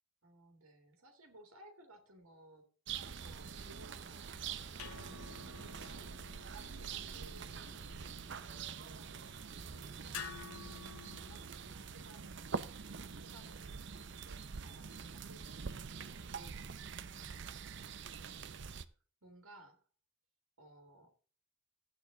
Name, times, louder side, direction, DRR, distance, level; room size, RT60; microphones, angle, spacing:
voice 1, 0.2-17.8 18.3-18.7 19.2-19.9 20.6-21.1, right 1 dB, 75° right, 6 dB, 2.3 m, -61 dB
sound 1, 2.9-18.9, right 6 dB, 55° right, 0.6 m, -45 dB
sound 2, 4.1-12.0, left 7 dB, 85° left, 1.1 m, -52 dB
13.0 x 8.5 x 3.8 m, 0.42 s
head